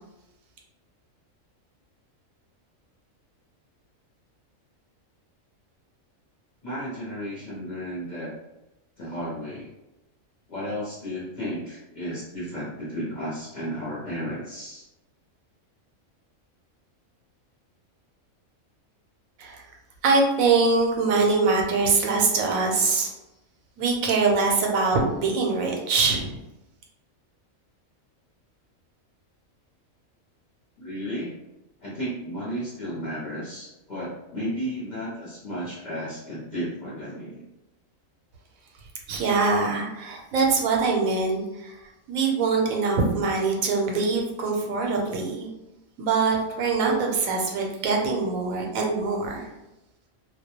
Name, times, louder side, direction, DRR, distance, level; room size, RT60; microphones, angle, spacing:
voice 1, 6.6-8.3 9.0-9.7 10.5-14.8 30.8-31.3 31.8-37.3, equal, 50° left, -7 dB, 0.6 m, -33 dB
voice 2, 20.0-23.1 23.8-26.4 39.1-41.7 42.1-45.5 46.0-49.5, right 4 dB, 80° right, 0 dB, 1.0 m, -23 dB
2.3 x 2.1 x 2.8 m, 0.94 s
omnidirectional pair, 1.4 m